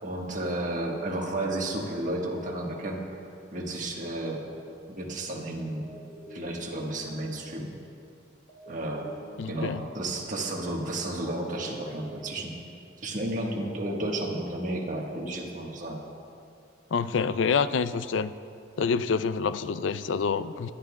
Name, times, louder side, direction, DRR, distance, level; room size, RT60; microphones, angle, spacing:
voice 1, 0.0-3.2 3.5-4.5 4.9-5.9 6.3-7.7 8.7-9.1 9.5-12.5 13.0-16.0, right 1 dB, 45° right, 0 dB, 1.4 m, -32 dB
sound 1, 5.8-7.5 8.5-10.2 11.2-12.9, right 1 dB, 40° left, 2.1 m, -48 dB
voice 2, 9.4-9.8 16.9-18.3 18.8-20.7, left 5 dB, 85° left, 13 dB, 0.4 m, -27 dB
23.5 x 11.5 x 2.3 m, 2.5 s
head